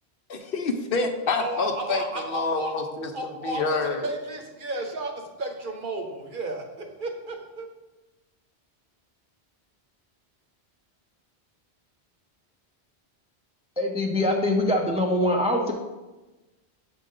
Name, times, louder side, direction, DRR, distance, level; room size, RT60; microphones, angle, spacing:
voice 1, 0.3-3.1 3.4-4.1, left 3 dB, 60° left, 5 dB, 0.8 m, -27 dB
voice 2, 1.4-2.7 3.1-7.7, right 2 dB, 55° right, 3 dB, 0.9 m, -33 dB
voice 3, 13.8-15.7, left 1 dB, 10° right, 0 dB, 0.4 m, -23 dB
7.5 x 4.2 x 3.7 m, 1.1 s
omnidirectional pair, 1.1 m